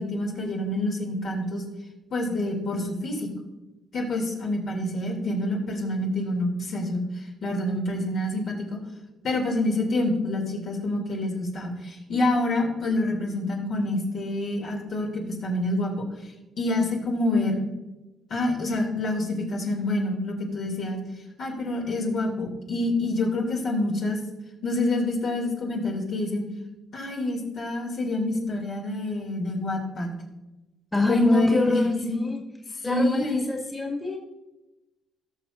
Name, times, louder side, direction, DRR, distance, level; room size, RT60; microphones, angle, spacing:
voice 1, 0.0-1.6 2.1-3.3 3.9-8.8 9.2-16.1 16.6-17.6 18.3-21.0 21.4-24.2 24.6-26.4 26.9-30.1 31.1-32.2 32.8-33.4, left 2 dB, 65° left, 0 dB, 2.5 m, -27 dB
voice 2, 30.9-32.4 32.8-34.2, left 1 dB, 15° left, -1 dB, 1.8 m, -25 dB
18.0 x 6.2 x 2.5 m, 1.0 s
cardioid pair, 90°, 0 cm